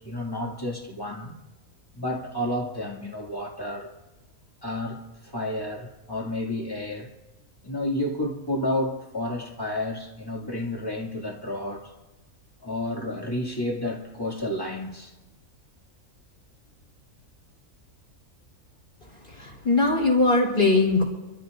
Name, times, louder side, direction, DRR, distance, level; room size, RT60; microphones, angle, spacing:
voice 1, 0.0-1.3 1.9-3.9 4.6-7.1 7.6-11.9 12.6-15.1, left 1 dB, 15° left, 2.3 m, -31 dB
voice 2, 19.3-21.0, left 3 dB, 35° left, 3.5 m, -21 dB
27.5 x 14.0 x 2.6 m
omnidirectional pair, 1.6 m